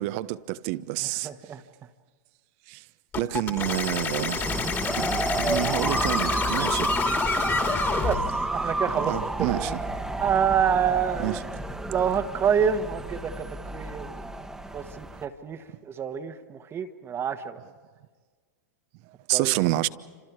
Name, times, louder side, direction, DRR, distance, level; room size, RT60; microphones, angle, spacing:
voice 1, 0.0-1.5 2.7-2.9 3.2-7.0 9.0-9.8 11.2-11.4 11.7-11.8 19.3-19.9, right 17 dB, 50° right, 0.9 m, -29 dB
voice 2, 1.2-1.6 7.9-9.1 9.4-9.8 10.2-11.4 11.9-14.2 14.7-17.6 19.3-19.5, right 8 dB, 25° right, 1.4 m, -27 dB
sound 1, 3.1-8.2, left 6 dB, 25° left, 2.6 m, -29 dB
sound 2, 4.4-15.2, right 2 dB, 5° right, 1.5 m, -30 dB
29.0 x 26.5 x 4.8 m
hypercardioid pair, 105°, 10 cm